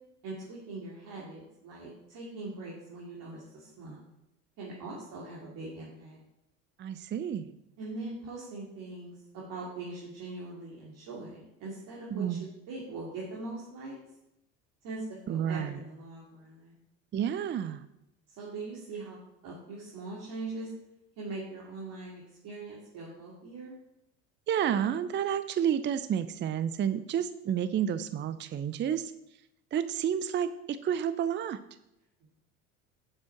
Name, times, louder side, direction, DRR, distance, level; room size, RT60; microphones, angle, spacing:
voice 1, 0.2-4.0 4.6-6.2 7.8-12.4 12.7-14.0 14.8-16.8 18.3-19.2 19.4-20.7 21.2-23.8, right 3 dB, 60° right, -5 dB, 2.7 m, -41 dB
voice 2, 6.8-7.5 12.1-12.5 15.3-15.8 17.1-17.8 24.5-29.1 29.7-31.6, right 9 dB, 30° right, 13 dB, 0.5 m, -30 dB
7.7 x 6.2 x 5.8 m, 0.85 s
hypercardioid pair, 85°, 37 cm